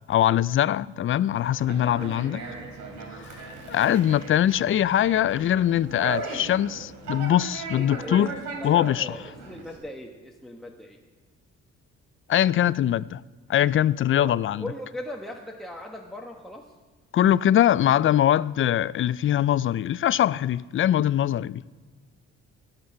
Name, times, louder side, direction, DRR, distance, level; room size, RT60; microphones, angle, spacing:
voice 1, 0.1-2.4 3.7-8.3 8.6-9.1 12.3-13.2 13.5-14.7 17.1-21.6, left 11 dB, 45° left, 0.4 m, -22 dB
Conversation, 1.4-9.8, right 3 dB, 70° right, 3.6 m, -38 dB
voice 2, 7.8-11.0 14.1-16.7, left 1 dB, ahead, 1.3 m, -39 dB
20.0 x 8.9 x 5.7 m
cardioid pair, 90°, 30 cm